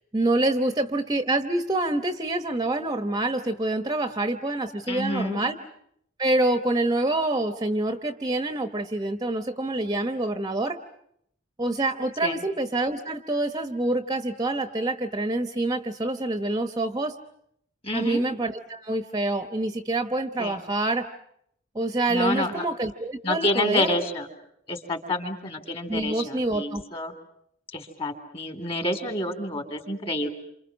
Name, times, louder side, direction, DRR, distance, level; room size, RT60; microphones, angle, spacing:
voice 1, 0.1-5.5 6.2-10.8 11.6-17.1 17.9-21.1 21.7-23.9 25.9-26.8, right 2 dB, 20° right, 9 dB, 1.0 m, -26 dB
voice 2, 4.9-5.5 12.2-12.3 17.8-18.2 20.4-20.6 22.1-22.6 23.2-24.3 24.7-27.1 27.7-30.3, left 1 dB, 30° left, 7 dB, 3.3 m, -28 dB
28.5 x 27.5 x 6.2 m, 0.70 s
head